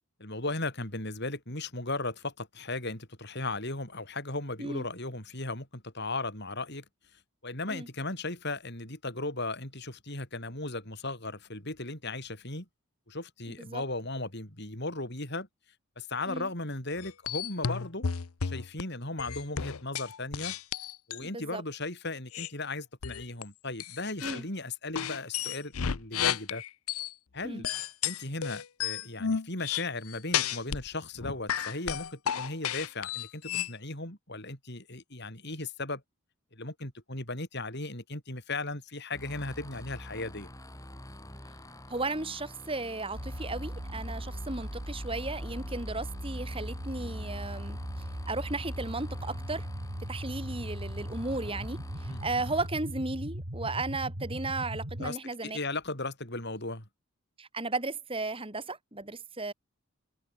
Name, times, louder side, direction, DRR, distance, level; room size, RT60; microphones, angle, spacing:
voice 1, 0.2-6.8 7.4-12.7 13.1-15.5 16.0-18.0 18.4-20.5 21.1-26.6 27.3-27.7 28.0-36.0 36.5-40.5 52.1-52.2 55.0-55.2 55.4-56.9, left 2 dB, 50° left, 7.5 m, -36 dB
sound 1, 17.0-18.8 19.2-21.3 22.3-22.5 23.0-23.4 23.8-24.4 24.9-27.1 27.6-30.9 31.2-33.7, left 8 dB, 80° left, 0.7 m, -32 dB
voice 2, 21.2-21.6 24.2-24.4 27.4-27.7 41.9-47.8 48.3-49.7 50.1-55.6 57.4-59.5, right 2 dB, 25° right, 3.0 m, -35 dB
sound 2, 39.1-52.7, left 1 dB, 15° left, 5.7 m, -47 dB
sound 3, 43.1-55.1, right 1 dB, 55° right, 4.0 m, -38 dB
head